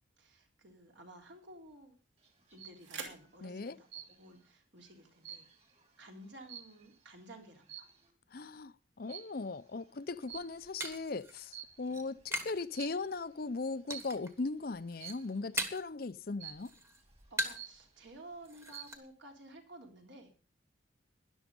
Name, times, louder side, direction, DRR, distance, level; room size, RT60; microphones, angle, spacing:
voice 1, 0.2-2.0 2.5-7.9 11.9-12.1 17.3-20.3, right 1 dB, 65° right, 3.4 m, -54 dB
sound 1, 0.5-6.5, right 5 dB, 80° right, 3.0 m, -54 dB
sound 2, 2.2-2.8 3.9-4.4 4.8-7.1 7.6-8.1 9.1-9.5 10.3-10.9 11.4-12.0 12.7-13.1 13.9-14.3 15.0-15.4 16.4-16.9 17.3-17.4 17.5-18.1 18.5-19.0, right 10 dB, 30° right, 2.6 m, -49 dB
voice 2, 3.4-3.8 8.3-16.7, left 3 dB, 50° left, 0.6 m, -38 dB
sound 3, 10.1-12.7 13.0-13.5 13.9-14.4 14.7-16.0 16.3-17.8 18.1-18.2 18.4-19.0, right 1 dB, 15° right, 1.4 m, -40 dB
12.5 x 11.0 x 5.2 m
head